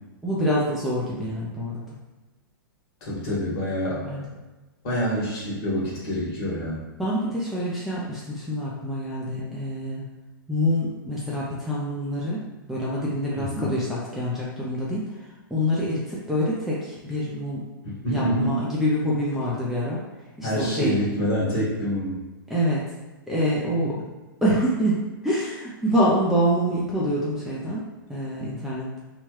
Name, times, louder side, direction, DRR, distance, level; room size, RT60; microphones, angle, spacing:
voice 1, 0.2-1.8 4.0-4.2 7.0-10.1 10.5-17.6 18.1-20.0 20.4-21.0 22.5-22.8 23.3-24.0 24.4-25.0 25.2-27.8 28.1-29.0, equal, 5° right, -7 dB, 0.5 m, -26 dB
voice 2, 3.0-4.3 4.8-6.9 13.3-13.7 17.8-18.6 20.4-22.2 23.8-24.0, equal, 45° left, -6 dB, 1.4 m, -27 dB
2.8 x 2.3 x 3.1 m, 1.1 s
hypercardioid pair, 120°, 12 cm